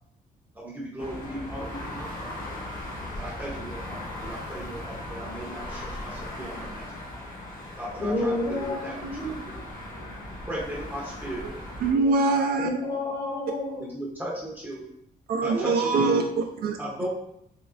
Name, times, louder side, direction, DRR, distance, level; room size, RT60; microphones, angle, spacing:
voice 1, 0.6-2.3 3.2-6.8 7.8-9.5 10.5-11.6 12.6-13.2 13.8-14.8 15.4-16.1 16.8-17.1, right 1 dB, 10° right, 0.6 m, -37 dB
sound 1, 1.0-11.9, left 1 dB, 60° left, 1.0 m, -38 dB
voice 2, 8.0-10.0 12.6-13.9, left 2 dB, 25° left, 0.7 m, -31 dB
voice 3, 11.8-12.7 15.3-16.8, right 3 dB, 75° right, 0.4 m, -23 dB
3.6 x 3.0 x 2.4 m
wide cardioid pair, 170°, 16 cm